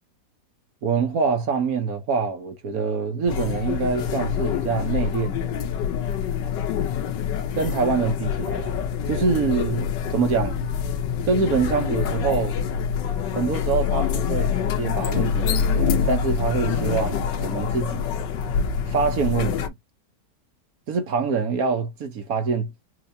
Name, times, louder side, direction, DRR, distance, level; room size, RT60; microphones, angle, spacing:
voice 1, 0.8-5.6 7.5-8.8 9.1-10.6 11.2-12.6 13.3-18.1 18.9-19.7 20.9-22.7, right 5 dB, 60° right, 1.3 m, -25 dB
sound 1, 3.3-19.7, left 7 dB, 85° left, 1.5 m, -25 dB
4.6 x 2.7 x 2.7 m
omnidirectional pair, 1.9 m